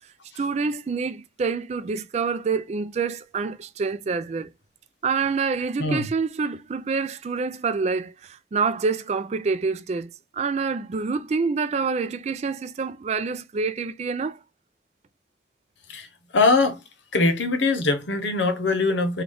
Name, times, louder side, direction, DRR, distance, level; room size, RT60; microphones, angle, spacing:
voice 1, 0.4-4.5 5.0-14.4, right 4 dB, 40° right, 0.3 m, -27 dB
voice 2, 16.3-16.8 17.1-19.2, left 3 dB, 85° left, 0.8 m, -22 dB
3.8 x 2.3 x 3.4 m
head